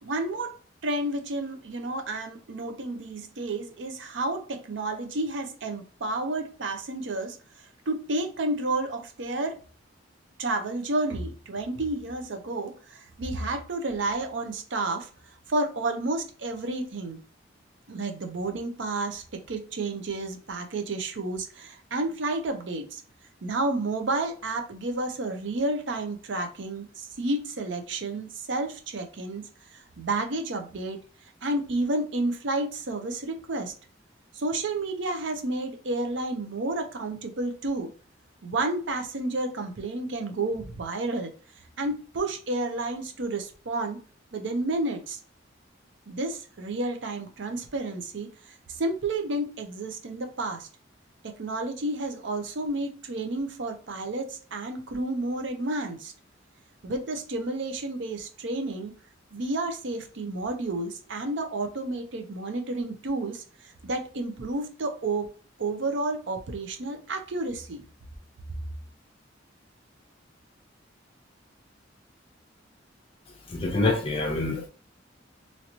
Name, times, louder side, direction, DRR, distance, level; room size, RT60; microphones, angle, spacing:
voice 1, 0.0-7.4 7.9-9.6 10.4-15.1 15.5-17.2 17.9-23.0 23.4-29.4 30.0-31.0 31.4-33.7 34.3-37.9 38.4-41.3 41.8-44.0 44.3-45.2 46.1-50.7 51.2-56.1 56.8-58.9 59.3-65.3 65.6-67.8, right 2 dB, 65° right, 0.6 m, -31 dB
voice 2, 73.5-74.7, left 2 dB, 30° left, 0.6 m, -26 dB
3.1 x 2.8 x 2.7 m
head